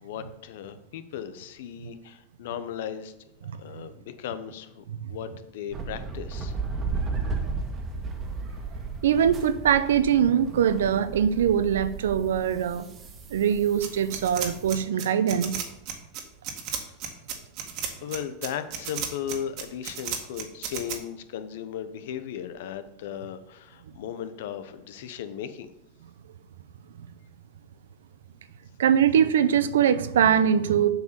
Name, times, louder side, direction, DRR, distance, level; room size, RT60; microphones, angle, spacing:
voice 1, 0.0-3.1 3.6-6.5 18.0-25.7, left 9 dB, 75° left, 11 dB, 0.9 m, -36 dB
sound 1, 5.7-14.8, right 4 dB, 30° right, 1.6 m, -35 dB
voice 2, 9.0-12.9 13.3-15.6 28.8-30.9, right 8 dB, 85° right, 14 dB, 0.6 m, -22 dB
sound 2, 13.8-21.0, right 8 dB, 55° right, 1.8 m, -33 dB
7.9 x 5.0 x 6.8 m, 0.83 s
hypercardioid pair, 110°, 0 cm